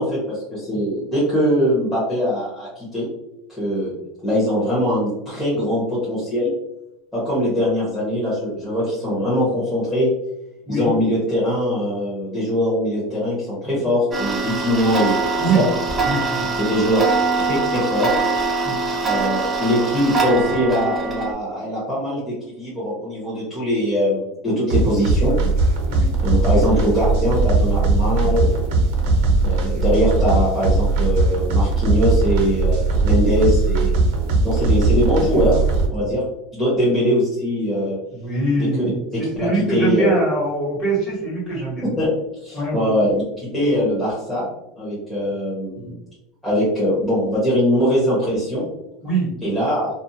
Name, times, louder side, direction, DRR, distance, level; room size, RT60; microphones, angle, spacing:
voice 1, 0.0-3.1 3.6-3.9 4.2-6.5 7.1-10.1 10.7-15.6 16.5-17.1 17.4-18.2 19.0-25.3 26.2-28.5 29.4-33.9 34.4-35.6 35.9-36.2 36.5-38.0 38.6-40.0 41.8-42.1 42.4-43.2 43.5-44.4 44.8-45.9 46.4-48.6 49.4-49.9, equal, 5° left, -10 dB, 0.9 m, -21 dB
Tick-tock, 14.1-21.3, right 4 dB, 15° right, 0.5 m, -23 dB
voice 2, 16.0-16.5 18.6-18.8 25.9-26.1 29.2-29.5 36.0-36.1 38.1-38.9 39.2-41.8 42.5-43.0 45.8-45.9 49.0-49.3, right 2 dB, 25° left, -6 dB, 1.4 m, -23 dB
sound 1, 24.7-35.9, right 3 dB, 75° right, 0.7 m, -19 dB
2.5 x 2.1 x 2.7 m, 0.88 s
supercardioid pair, 155°, 0 cm